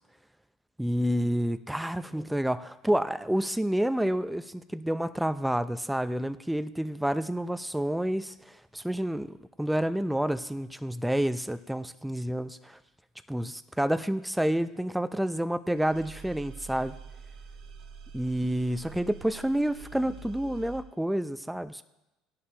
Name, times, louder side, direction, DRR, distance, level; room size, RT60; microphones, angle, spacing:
voice 1, 0.8-12.8 13.3-16.9 18.1-21.8, right 1 dB, 5° right, 12 dB, 0.5 m, -29 dB
sound 1, 15.7-20.8, right 5 dB, 70° right, 1.3 m, -46 dB
17.0 x 11.0 x 2.9 m, 0.95 s
supercardioid pair, 85°, 0 cm